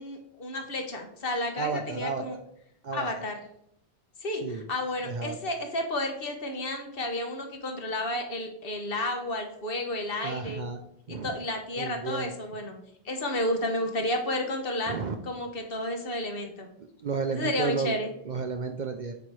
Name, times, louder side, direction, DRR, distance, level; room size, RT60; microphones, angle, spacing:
voice 1, 0.0-2.4 2.9-3.4 4.2-10.6 11.1-12.8 13.0-15.0 15.2-16.7 17.3-18.1, left 1 dB, 60° left, 4 dB, 1.2 m, -31 dB
voice 2, 1.6-2.2 2.8-3.1 4.4-4.6 5.0-5.4 10.2-10.8 11.1-11.4 11.8-12.3 14.9-15.1 16.8-18.0 18.3-19.1, right 5 dB, 55° right, 5 dB, 0.6 m, -32 dB
8.5 x 3.0 x 4.7 m, 0.73 s
omnidirectional pair, 1.1 m